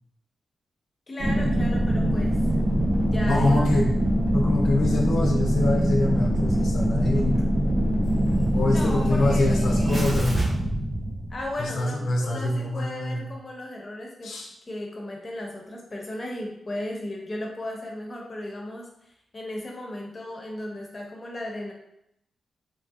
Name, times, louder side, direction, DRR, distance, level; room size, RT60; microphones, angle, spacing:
voice 1, 1.1-2.6 3.0-3.8 8.6-9.5 11.3-14.4 14.7-21.7, left 1 dB, 25° left, -1 dB, 0.6 m, -35 dB
sound 1, 1.2-11.7 12.1-12.2, equal, 35° right, 0.6 m, -23 dB
voice 2, 3.3-3.9 4.3-7.4 8.5-10.5 11.6-13.3 14.2-14.5, left 2 dB, 90° left, -1 dB, 0.5 m, -25 dB
3.1 x 2.6 x 2.3 m, 0.79 s
wide cardioid pair, 150°, 0 cm